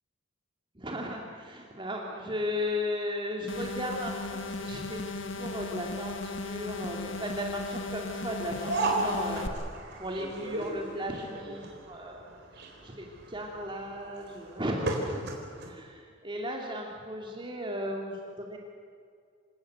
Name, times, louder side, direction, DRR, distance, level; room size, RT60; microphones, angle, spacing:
voice 1, 0.8-9.5 10.0-12.2 12.8-15.2 15.7-18.6, equal, 25° right, 0 dB, 2.6 m, -36 dB
sound 1, 3.5-9.5, left 3 dB, 70° left, 1.8 m, -36 dB
sound 2, 8.4-15.7, right 2 dB, 55° right, 4.0 m, -35 dB
27.0 x 18.0 x 7.9 m, 2.2 s
head